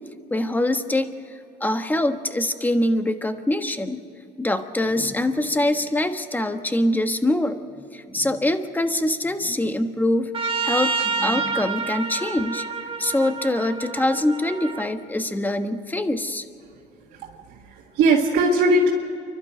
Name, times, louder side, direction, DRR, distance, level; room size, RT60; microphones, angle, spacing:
voice 1, 0.3-1.1 1.6-4.0 4.4-10.3 10.6-12.6 13.0-16.4, left 1 dB, 10° left, 8 dB, 1.3 m, -24 dB
Trumpet, 10.3-14.9, right 5 dB, 30° right, 1.7 m, -28 dB
voice 2, 17.2-18.9, right 2 dB, 90° right, -2 dB, 1.9 m, -20 dB
29.0 x 12.0 x 7.9 m, 2.6 s
cardioid pair, 110°, 17 cm